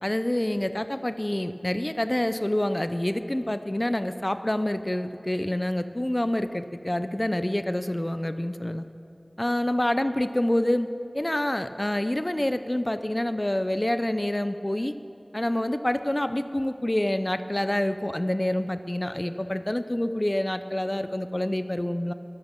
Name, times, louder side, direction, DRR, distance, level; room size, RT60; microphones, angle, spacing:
voice 1, 0.0-8.8 9.4-14.9 15.3-22.1, left 1 dB, 30° left, 10 dB, 0.5 m, -27 dB
23.0 x 8.1 x 6.8 m, 2.8 s
wide cardioid pair, 40°, 0 cm